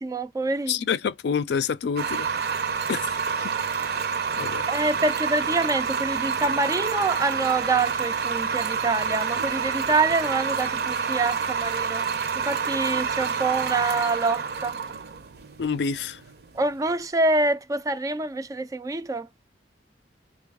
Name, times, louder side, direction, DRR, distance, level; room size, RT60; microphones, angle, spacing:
voice 1, 0.0-0.7 4.7-12.0 12.4-14.8 16.5-19.3, right 3 dB, 20° right, 0.3 m, -26 dB
voice 2, 0.7-2.6 2.9-3.5 3.8-4.0 4.4-4.6 15.6-16.2, left 6 dB, 65° left, 0.4 m, -28 dB
sound 1, 2.0-16.9, right 6 dB, 60° right, 0.6 m, -28 dB
4.6 x 2.3 x 3.4 m
head